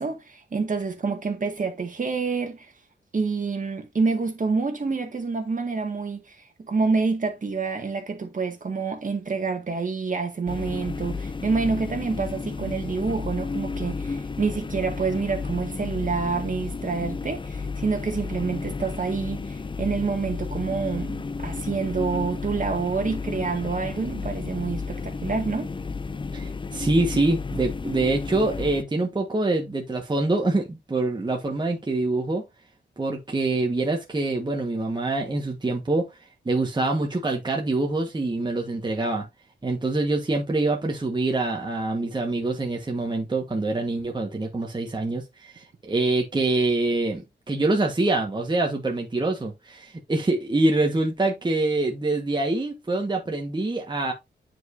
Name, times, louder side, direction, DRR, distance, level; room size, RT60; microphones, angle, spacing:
voice 1, 0.0-2.7 3.1-25.7, right 4 dB, 45° right, 1.8 m, -27 dB
sound 1, 10.5-28.8, left 4 dB, 25° left, 0.5 m, -32 dB
voice 2, 26.3-32.4 33.0-36.1 36.4-39.3 39.6-54.1, right 2 dB, 25° right, 1.4 m, -25 dB
9.3 x 4.8 x 2.6 m
wide cardioid pair, 115°, 19 cm